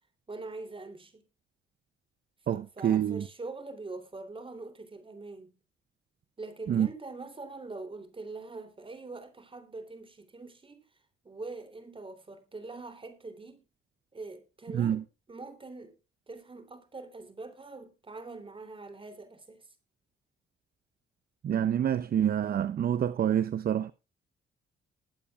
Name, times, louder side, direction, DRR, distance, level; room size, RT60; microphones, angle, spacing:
voice 1, 0.3-1.2 2.5-5.6 6.4-10.8 11.2-13.6 14.1-15.0 15.3-15.9 16.3-19.7, right 3 dB, 25° right, 3.3 m, -43 dB
voice 2, 2.5-3.2 6.7-6.9 14.7-15.0 21.4-23.9, right 9 dB, 50° right, 0.6 m, -27 dB
21.0 x 8.3 x 2.4 m
cardioid pair, 90°, 20 cm